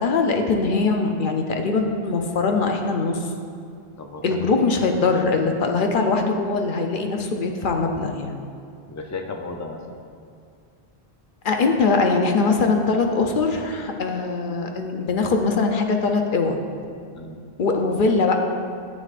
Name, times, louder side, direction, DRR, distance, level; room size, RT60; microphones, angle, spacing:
voice 1, 0.0-3.2 4.2-8.4 11.4-16.6 17.6-18.3, left 4 dB, 60° left, 3 dB, 0.7 m, -22 dB
voice 2, 4.0-4.7 8.9-10.0 17.1-17.4, left 3 dB, 25° left, 3 dB, 0.4 m, -35 dB
9.7 x 7.3 x 2.5 m, 2.3 s
omnidirectional pair, 1.1 m